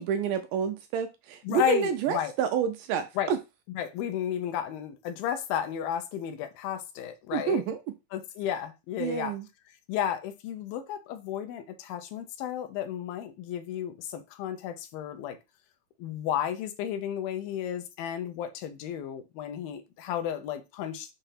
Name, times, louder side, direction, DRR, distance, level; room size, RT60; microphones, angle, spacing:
voice 1, 0.0-3.4 7.3-7.8 9.0-9.5, right 7 dB, 80° right, 2.0 m, -29 dB
voice 2, 1.4-2.3 3.2-3.3 3.8-7.6 8.1-9.3 9.9-15.4 16.0-21.1, left 10 dB, 85° left, 2.6 m, -33 dB
6.7 x 2.8 x 5.7 m
omnidirectional pair, 4.2 m